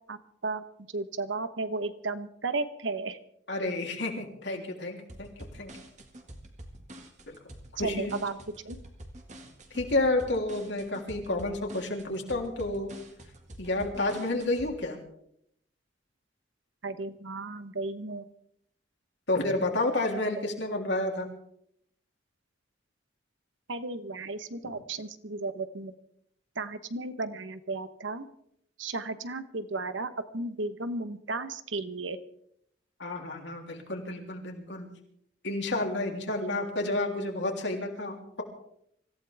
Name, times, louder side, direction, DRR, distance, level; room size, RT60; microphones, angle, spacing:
voice 1, 0.9-3.2 7.8-8.3 8.6-8.8 16.8-18.2 23.7-25.9 26.6-28.3 28.8-32.2, right 3 dB, 85° right, 11 dB, 1.2 m, -34 dB
voice 2, 3.5-5.3 5.6-5.7 7.3-7.4 7.7-8.2 9.7-12.9 13.6-15.0 19.3-21.3 33.0-34.9 35.4-38.4, left 2 dB, 70° left, 1 dB, 3.4 m, -30 dB
sound 1, 5.1-14.7, right 1 dB, 40° right, 2.0 m, -47 dB
25.5 x 15.5 x 3.5 m, 0.71 s
head